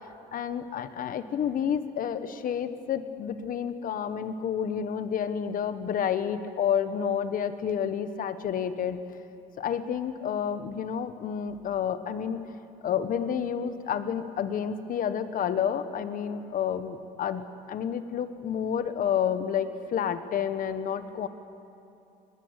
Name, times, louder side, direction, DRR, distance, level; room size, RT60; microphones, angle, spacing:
voice 1, 0.3-9.0 9.6-17.4 17.7-21.3, left 8 dB, 55° left, 11 dB, 1.3 m, -30 dB
20.5 x 20.0 x 8.2 m, 2.7 s
cardioid pair, 110°, 17 cm